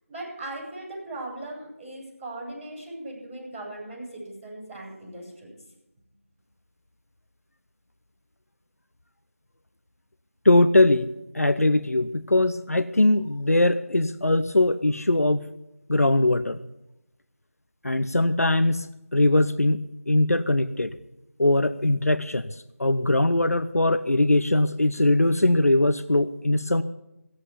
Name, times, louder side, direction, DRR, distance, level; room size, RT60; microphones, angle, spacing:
voice 1, 0.1-5.6, right 2 dB, ahead, -28 dB, 5.8 m, -38 dB
voice 2, 10.4-11.1 11.3-15.5 15.9-16.6 17.8-18.9 19.1-20.9 21.4-22.5 22.8-26.8, left 2 dB, 75° left, 13 dB, 0.7 m, -21 dB
17.5 x 7.9 x 8.3 m, 0.90 s
figure-of-eight pair, 180°, 8 cm